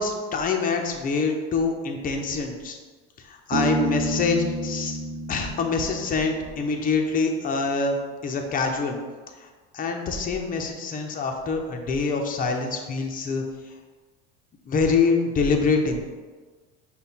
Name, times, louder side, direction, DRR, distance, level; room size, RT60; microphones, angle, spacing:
voice 1, 0.0-2.8 3.3-5.0 5.3-8.0 8.2-9.0 9.7-13.4 14.7-16.0, left 4 dB, 30° left, 3 dB, 0.6 m, -25 dB
Bass guitar, 3.5-7.0, right 2 dB, 75° right, 0.7 m, -30 dB
5.5 x 2.3 x 4.1 m, 1.4 s
cardioid pair, 125°, 30 cm